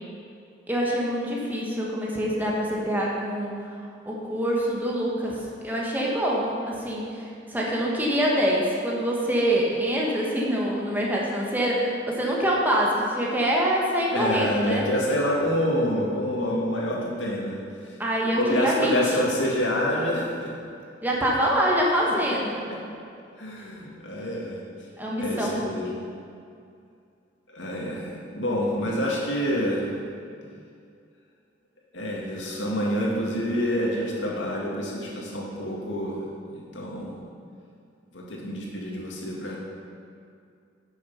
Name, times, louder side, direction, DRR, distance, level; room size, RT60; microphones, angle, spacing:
voice 1, 0.7-3.6 4.0-5.4 5.6-14.8 18.0-19.0 21.0-22.6 25.0-25.6, equal, 10° right, -4 dB, 1.4 m, -25 dB
voice 2, 14.1-18.0 18.3-20.5 22.0-22.4 22.7-22.8 23.4-24.6 25.2-25.9 27.5-29.9 31.9-37.2 38.1-39.6, equal, 85° left, -3 dB, 2.1 m, -27 dB
9.4 x 6.7 x 5.7 m, 2.4 s
head